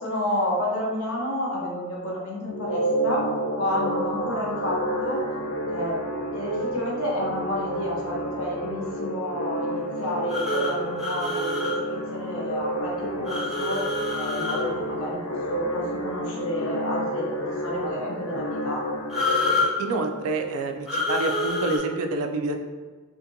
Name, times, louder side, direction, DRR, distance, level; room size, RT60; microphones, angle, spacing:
voice 1, 0.0-3.3 3.6-5.2 5.7-6.0 6.3-13.8 14.1-18.8, left 1 dB, 75° left, -3 dB, 0.8 m, -30 dB
sound 1, 2.5-19.6, right 1 dB, 90° left, 0.4 m, -30 dB
sound 2, 10.3-11.7 13.2-14.6 19.1-19.7 20.9-21.8, left 2 dB, ahead, 0.7 m, -26 dB
voice 2, 19.8-22.6, right 3 dB, 80° right, 5 dB, 0.3 m, -27 dB
2.7 x 2.5 x 2.6 m, 1.4 s
head